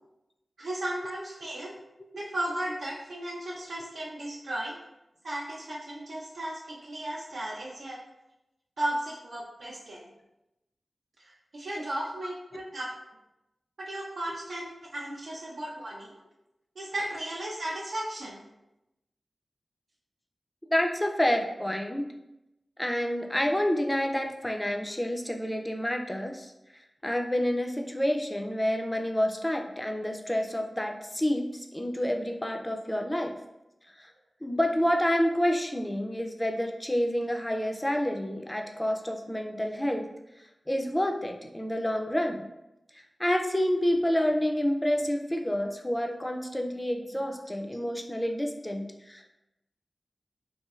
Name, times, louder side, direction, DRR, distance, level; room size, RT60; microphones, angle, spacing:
voice 1, 0.6-1.7 2.1-4.8 5.2-8.0 8.8-10.0 11.2-12.9 13.8-16.1 16.8-18.4, right 1 dB, 85° right, -5 dB, 0.4 m, -35 dB
voice 2, 20.7-22.1 22.8-26.5 27.0-33.3 34.0-34.1 34.4-40.1 40.7-42.4 42.9-49.3, equal, 15° left, 3 dB, 0.3 m, -28 dB
3.0 x 2.6 x 2.3 m, 0.92 s
wide cardioid pair, 80°, 0 cm